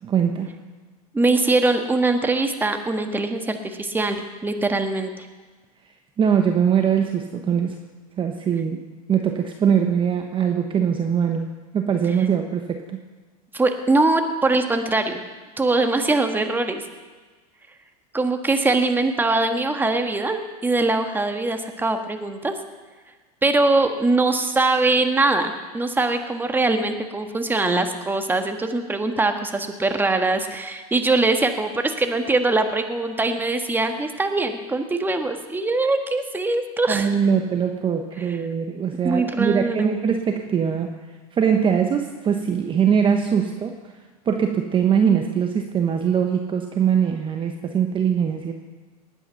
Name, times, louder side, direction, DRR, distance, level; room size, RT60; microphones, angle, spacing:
voice 1, 0.0-0.5 6.2-7.8 8.2-11.5 11.7-13.0 36.9-40.9 41.3-43.8 44.3-48.5, right 7 dB, 25° right, 5 dB, 1.0 m, -22 dB
voice 2, 1.1-5.3 13.5-15.2 15.6-16.8 18.1-22.5 23.4-37.1 39.0-40.0, right 2 dB, 10° right, 6 dB, 1.4 m, -22 dB
19.5 x 9.0 x 5.8 m, 1.3 s
hypercardioid pair, 110°, 20 cm